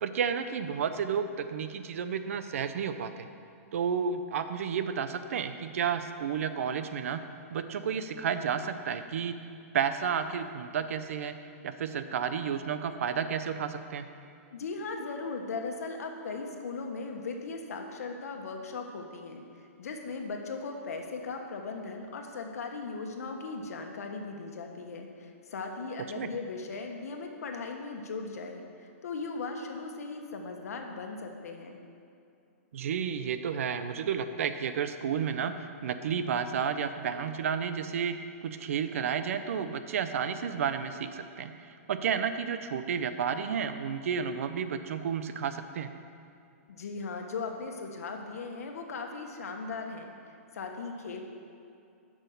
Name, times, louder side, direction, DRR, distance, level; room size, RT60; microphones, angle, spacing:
voice 1, 0.0-3.3 3.7-7.2 7.5-9.4 9.7-11.4 11.6-14.0 26.1-26.3 32.7-38.2 38.4-45.9, right 7 dB, 65° right, 10 dB, 0.7 m, -31 dB
voice 2, 14.5-31.8 46.7-50.1 50.5-51.2, left 4 dB, 85° left, 3 dB, 1.3 m, -38 dB
8.3 x 6.2 x 6.7 m, 2.5 s
hypercardioid pair, 170°, 8 cm